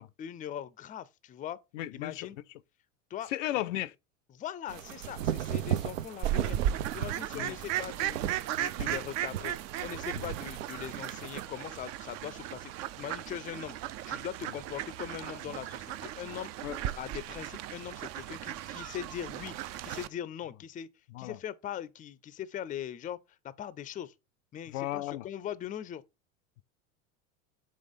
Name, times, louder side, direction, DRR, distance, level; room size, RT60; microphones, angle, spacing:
voice 1, 0.0-1.6 1.9-2.4 3.1-3.3 4.3-6.6 6.9-8.2 8.6-9.5 9.8-13.8 14.1-16.5 17.0-19.5 19.8-20.9 21.2-23.2 23.6-24.1 24.5-26.0, left 10 dB, 20° left, 0.5 m, -40 dB
voice 2, 1.7-2.3 3.3-3.9 7.3-7.5 10.1-10.2 16.6-16.8 21.1-21.4 24.7-25.3, left 15 dB, 70° left, 0.5 m, -34 dB
sound 1, 4.7-11.5, right 11 dB, 80° right, 0.7 m, -36 dB
Fowl, 6.2-20.1, right 12 dB, 45° right, 0.5 m, -36 dB
5.4 x 3.4 x 5.3 m
hypercardioid pair, 90°, 39 cm